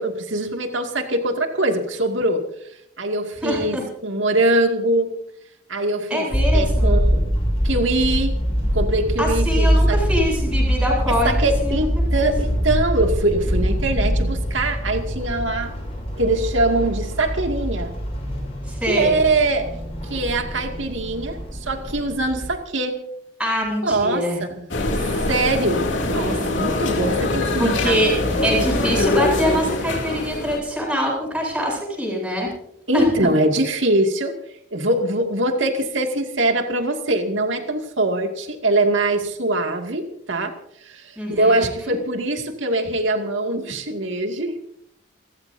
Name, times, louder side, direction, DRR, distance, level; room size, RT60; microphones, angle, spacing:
voice 1, 0.0-2.5 3.0-5.1 5.7-7.2 7.6-8.4 8.7-10.0 11.1-15.7 16.2-18.0 18.9-19.7 20.0-23.0 23.8-24.7 25.3-28.0 32.9-34.3 34.7-40.5 40.8-44.6, right 2 dB, 75° right, 4 dB, 2.4 m, -22 dB
voice 2, 3.4-3.8 6.1-7.0 9.2-11.3 11.6-11.8 12.2-12.3 18.7-19.2 23.4-24.4 27.6-28.1 28.4-32.5 32.9-33.0 41.2-41.6, equal, 5° right, -4 dB, 7.8 m, -24 dB
sound 1, 6.3-22.5, equal, 30° left, 7.0 m, -23 dB
sound 2, 24.7-30.6, left 2 dB, 70° left, 3.0 m, -23 dB
29.5 x 14.5 x 2.8 m, 0.73 s
head